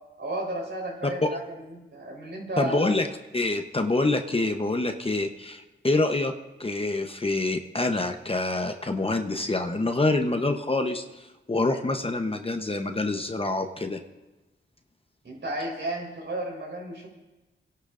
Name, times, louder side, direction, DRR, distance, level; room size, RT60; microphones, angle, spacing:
voice 1, 0.2-1.4 1.7-2.9 15.2-17.1, right 1 dB, 60° right, -1 dB, 4.1 m, -33 dB
voice 2, 2.6-3.1 3.3-6.3 6.6-14.0, left 2 dB, 25° left, 6 dB, 0.9 m, -26 dB
30.0 x 11.5 x 2.6 m, 1.1 s
cardioid pair, 65°, 21 cm